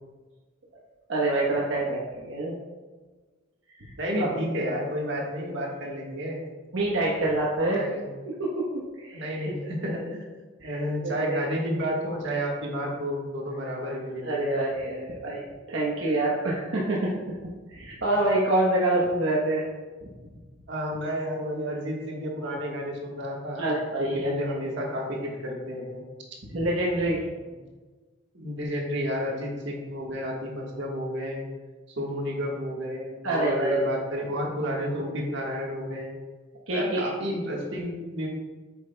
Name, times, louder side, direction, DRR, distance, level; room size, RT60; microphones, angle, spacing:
voice 1, 1.1-2.5 3.8-4.3 6.7-7.8 8.2-8.6 9.0-9.5 9.8-10.0 10.6-11.5 14.2-15.4 15.7-17.1 17.7-19.6 23.6-24.3 26.4-27.2 33.2-33.9 36.7-37.1, right 2 dB, 80° right, -4 dB, 1.1 m, -26 dB
voice 2, 4.0-6.4 7.7-8.1 9.1-10.2 10.6-14.5 20.7-26.0 28.3-31.4 32.0-36.1 36.7-38.3, equal, 60° right, -1 dB, 1.5 m, -31 dB
8.3 x 7.1 x 2.2 m, 1.3 s
head